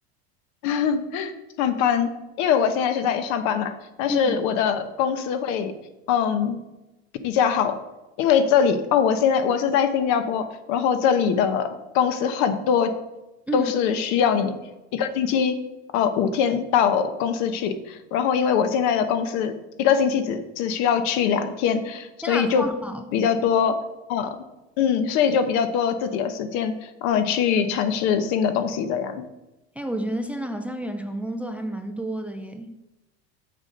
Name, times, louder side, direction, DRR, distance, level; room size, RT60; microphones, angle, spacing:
voice 1, 0.6-1.3 1.6-2.1 2.4-5.7 6.1-6.6 7.2-7.8 8.2-12.9 13.5-14.6 14.9-15.6 15.9-19.5 19.8-22.7 23.1-23.8 24.1-24.3 24.8-29.2, left 7 dB, 60° left, 9 dB, 1.0 m, -22 dB
voice 2, 22.2-23.0 27.1-27.2 29.8-32.8, right 1 dB, 5° right, 7 dB, 0.4 m, -30 dB
7.1 x 6.9 x 5.2 m, 1.0 s
supercardioid pair, 145°, 32 cm